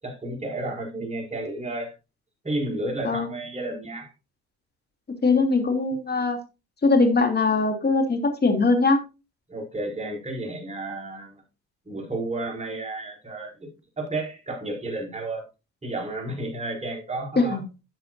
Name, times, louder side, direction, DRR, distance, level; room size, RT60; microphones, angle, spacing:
voice 1, 0.0-1.9 2.4-4.1 9.5-11.4 11.9-13.7 14.0-15.4 15.8-17.6, right 2 dB, 20° right, 1 dB, 5.6 m, -32 dB
voice 2, 5.2-6.4 6.8-9.0 17.4-17.6, left 3 dB, 35° left, 6 dB, 2.9 m, -21 dB
13.0 x 7.7 x 2.7 m, 0.28 s
cardioid pair, 90°, 30 cm